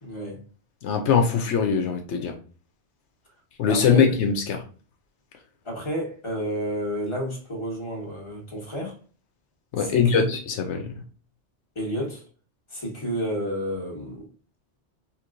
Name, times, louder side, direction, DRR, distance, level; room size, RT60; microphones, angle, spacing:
voice 1, 0.0-0.4 3.7-4.1 5.6-9.0 9.8-10.4 11.7-12.2 12.7-14.3, equal, 25° left, 1.3 m, -30 dB
voice 2, 0.8-2.3 3.6-4.6 9.7-10.9, left 6 dB, 80° left, 1.0 m, -22 dB
4.5 x 3.0 x 2.5 m
omnidirectional pair, 1.2 m